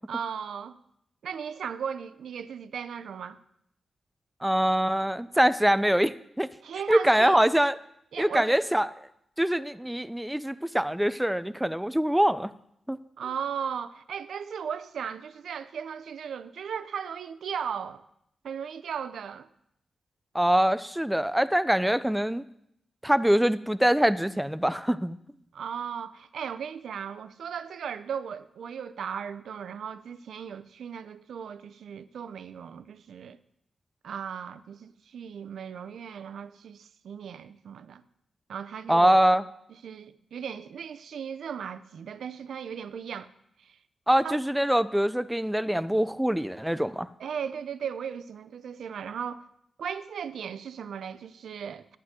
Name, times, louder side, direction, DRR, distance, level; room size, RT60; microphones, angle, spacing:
voice 1, 0.1-0.8 1.2-3.4 6.6-7.4 8.1-8.6 13.2-18.0 18.4-19.5 25.5-33.4 34.0-38.0 38.5-39.2 39.8-43.3 43.6-43.8 44.2-44.4 47.2-49.4 49.8-52.0, right 7 dB, 80° right, 0.5 m, -36 dB
voice 2, 4.4-6.5 6.9-7.8 8.2-8.9 9.4-12.5 12.9-13.0 20.3-22.4 23.0-25.2 38.9-39.4 44.1-47.1, equal, 5° right, 0.3 m, -24 dB
11.5 x 9.5 x 3.7 m
wide cardioid pair, 150°, 0 cm